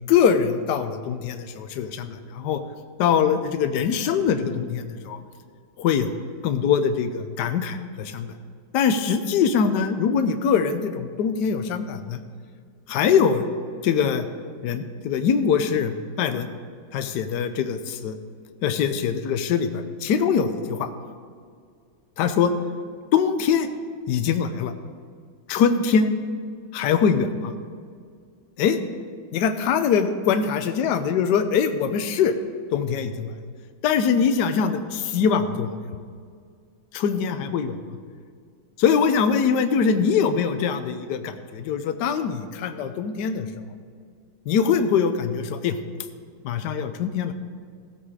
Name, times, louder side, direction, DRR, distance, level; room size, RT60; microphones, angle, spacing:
voice 1, 0.1-2.6 3.0-5.2 5.8-6.1 6.4-8.3 8.7-12.2 12.9-13.4 13.8-14.3 14.6-16.5 16.9-18.2 18.6-20.9 22.2-22.5 23.1-23.7 24.1-24.7 25.5-26.1 26.7-27.5 28.6-28.8 29.3-32.3 32.7-33.3 33.8-35.7 36.9-37.7 38.8-43.5 44.5-45.8 46.4-47.3, left 6 dB, 65° left, 9 dB, 1.2 m, -23 dB
16.0 x 7.4 x 4.9 m, 2.1 s
omnidirectional pair, 2.3 m